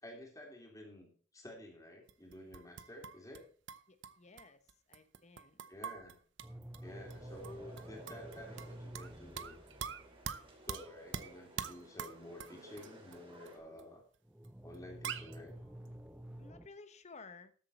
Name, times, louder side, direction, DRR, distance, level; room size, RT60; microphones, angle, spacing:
voice 1, 0.0-3.5 5.7-6.2 6.8-9.6 10.7-14.0 14.6-15.6, left 1 dB, 20° left, 1 dB, 3.3 m, -51 dB
sound 1, 2.1-3.4 3.7-6.8 7.1-7.2 7.4-9.1 9.4-13.2 13.5-13.6 13.8-13.9 14.4-14.5 14.7-14.8 15.0-15.4, right 7 dB, 75° right, 0.8 m, -44 dB
voice 2, 3.9-5.6 16.4-17.5, left 4 dB, 35° left, 11 dB, 1.1 m, -55 dB
sound 2, 6.4-10.6 14.2-16.7, right 1 dB, 5° right, 0.5 m, -50 dB
sound 3, 6.8-13.6, right 1 dB, 30° right, 2.8 m, -56 dB
13.5 x 7.5 x 4.3 m, 0.43 s
head